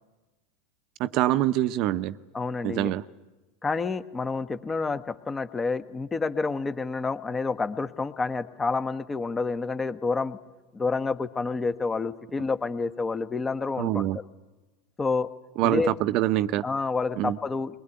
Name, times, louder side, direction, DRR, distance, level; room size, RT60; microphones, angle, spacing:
voice 1, 1.0-2.2 2.6-3.0 13.8-14.2 15.6-16.6 17.2-17.4, right 14 dB, 55° right, 15 dB, 0.7 m, -25 dB
voice 2, 2.3-2.9 3.6-10.4 10.7-14.1 15.0-15.3 15.6-15.9 16.6-17.8, left 4 dB, 20° left, 11 dB, 1.4 m, -29 dB
21.5 x 21.0 x 9.9 m, 1.2 s
hypercardioid pair, 90°, 0 cm